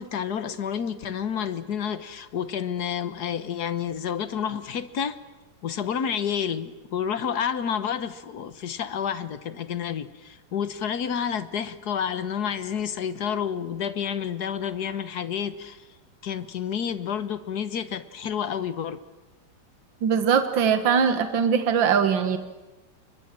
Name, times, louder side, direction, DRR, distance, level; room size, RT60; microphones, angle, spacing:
voice 1, 0.0-5.2 5.6-15.9 16.2-19.0, left 8 dB, 55° left, 14 dB, 1.5 m, -29 dB
voice 2, 20.0-22.4, right 7 dB, 70° right, 9 dB, 2.2 m, -21 dB
29.5 x 23.5 x 7.6 m, 1.1 s
omnidirectional pair, 2.2 m